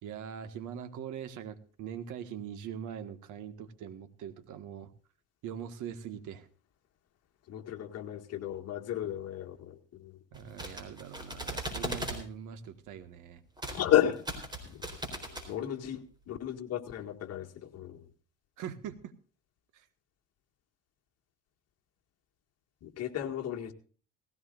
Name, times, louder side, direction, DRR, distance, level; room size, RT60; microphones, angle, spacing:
voice 1, 0.0-4.9 5.4-6.5 10.3-13.4 18.6-19.1 19.7-19.9, right 8 dB, 65° right, 10 dB, 1.7 m, -42 dB
voice 2, 7.5-10.2 13.7-14.3 14.6-14.9 15.1-18.1 22.8-23.7, left 11 dB, 50° left, 4 dB, 2.0 m, -33 dB
sound 1, 10.3-12.2 13.6-13.8 14.1-15.5, right 1 dB, 15° right, 3.8 m, -38 dB
18.5 x 16.5 x 2.5 m, 0.40 s
cardioid pair, 130°, 33 cm